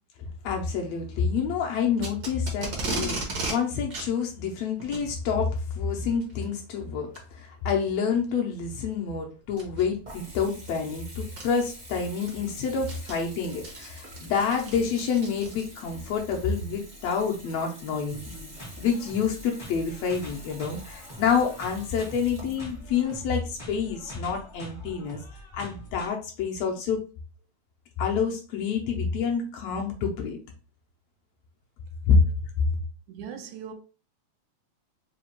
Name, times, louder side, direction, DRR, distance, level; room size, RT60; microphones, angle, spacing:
voice 1, 0.2-18.5 18.8-25.2 25.5-27.0 28.0-30.4 32.1-32.2, left 6 dB, 75° left, 1.7 m, -28 dB
Packing tape duct tape, 2.0-3.6 3.9-4.1 4.8-5.1 6.2-6.4 7.1-7.2 7.9-8.0 9.5-9.8 10.9-11.0 11.4-11.5 11.9-15.9, right 3 dB, 65° right, 0.9 m, -35 dB
Water tap faucet / Bathtub (filling or washing) / Trickle dribble, 9.4-24.3, equal, 40° right, 0.6 m, -47 dB
sound 1, 18.1-26.1, equal, 25° left, 0.5 m, -44 dB
voice 2, 33.1-33.7, right 7 dB, 80° right, 2.0 m, -39 dB
5.0 x 2.3 x 2.9 m
omnidirectional pair, 3.4 m